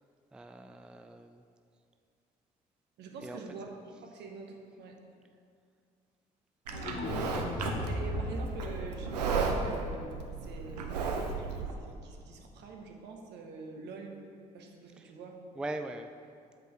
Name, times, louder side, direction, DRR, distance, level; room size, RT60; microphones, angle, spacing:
voice 1, 0.3-1.4 3.2-3.4 15.0-15.1 15.6-16.1, right 2 dB, 5° right, 7 dB, 0.3 m, -41 dB
voice 2, 3.0-5.0 7.0-14.2 14.5-15.4, right 4 dB, 60° right, 2 dB, 1.0 m, -46 dB
sound 1, 6.7-9.7, left 2 dB, 40° left, 0.8 m, -37 dB
Livestock farm animals working animals, 6.7-11.7, right 4 dB, 80° right, 0.6 m, -34 dB
7.7 x 5.0 x 4.5 m, 2.3 s
figure-of-eight pair, 45°, 20 cm